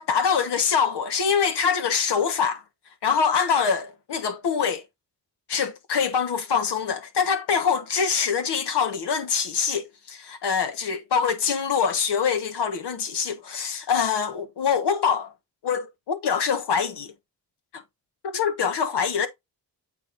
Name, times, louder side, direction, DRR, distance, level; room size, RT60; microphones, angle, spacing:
voice 1, 0.0-2.6 3.0-4.8 5.5-15.3 15.6-17.1 17.7-17.8 18.2-19.3, left 6 dB, 75° left, 1.4 m, -24 dB
8.5 x 5.0 x 2.6 m
cardioid pair, 55°, 41 cm